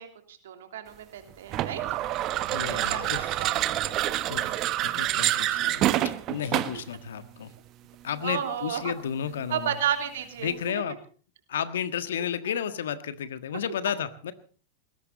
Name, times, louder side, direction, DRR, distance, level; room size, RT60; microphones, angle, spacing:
voice 1, 0.0-1.8 2.7-3.5 5.6-5.7 8.2-8.9 9.5-10.6 12.2-12.3, right 9 dB, 70° right, 7 dB, 3.1 m, -32 dB
sound 1, 1.5-6.9, right 13 dB, 40° right, 1.3 m, -27 dB
voice 2, 2.5-3.5 4.3-7.5 8.0-9.7 10.4-11.0 11.5-14.3, left 8 dB, 70° left, 12 dB, 1.5 m, -32 dB
20.5 x 17.0 x 4.1 m, 0.40 s
hypercardioid pair, 95°, 0 cm